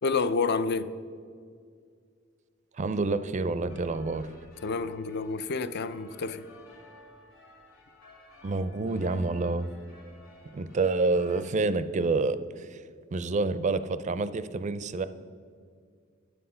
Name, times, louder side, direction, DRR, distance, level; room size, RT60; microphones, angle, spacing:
voice 1, 0.0-0.9 4.6-6.4, left 4 dB, 55° left, 0.4 m, -29 dB
voice 2, 2.8-4.3 8.4-9.7 10.5-12.8 13.1-15.1, right 3 dB, 35° right, 0.4 m, -28 dB
sound 1, 3.7-11.4, left 2 dB, 85° left, 2.4 m, -54 dB
10.0 x 7.8 x 5.6 m
head